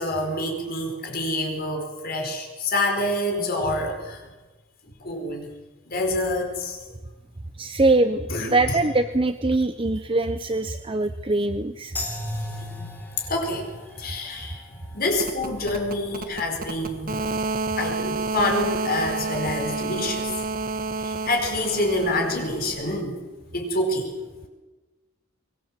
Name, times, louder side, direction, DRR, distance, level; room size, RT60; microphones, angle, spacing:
voice 1, 0.0-4.2 5.0-5.5 5.9-6.8 8.3-8.5 12.0-13.7 14.0-14.6 14.9-17.2 17.8-20.3 21.0-23.2 23.5-24.1, left 1 dB, 45° left, 3 dB, 4.7 m, -27 dB
voice 2, 7.6-11.9 14.0-14.1, right 2 dB, 25° right, 10 dB, 0.7 m, -23 dB
sound 1, 12.0-19.0, left 2 dB, 10° left, 3.8 m, -43 dB
sound 2, 15.1-23.0, right 3 dB, 40° right, 1.6 m, -30 dB
24.5 x 21.0 x 7.6 m, 1.2 s
head